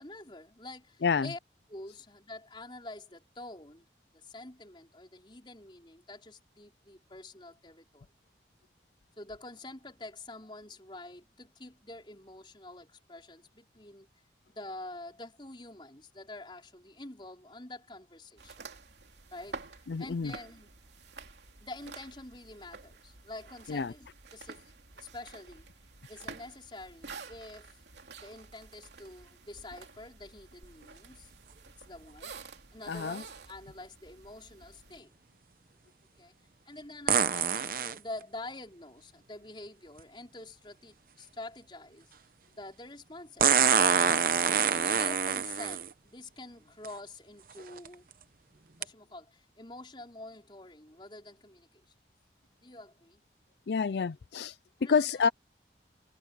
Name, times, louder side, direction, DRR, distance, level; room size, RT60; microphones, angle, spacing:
voice 1, 0.0-1.4 1.7-3.9 4.1-8.1 9.2-14.1 14.5-18.6 19.3-20.7 21.6-24.6 25.0-25.7 26.1-27.8 28.1-31.3 31.8-32.3 32.7-35.1 36.2-36.3 36.6-42.1 42.5-43.6 44.1-48.1 48.8-51.8 52.6-53.2 54.8-55.3, left 2 dB, 25° left, 4.6 m, -47 dB
sound 1, 18.4-35.0, right 4 dB, 75° right, 2.9 m, -49 dB
voice 2, 19.9-20.3 23.7-23.9 32.9-33.2 53.7-54.6 54.9-55.3, left 5 dB, 65° left, 0.4 m, -28 dB
sound 2, 30.6-30.7 37.1-38.0 40.0-40.1 43.4-45.9 46.8-46.9 47.6-47.9 48.8-48.9, right 7 dB, 50° right, 0.9 m, -25 dB
head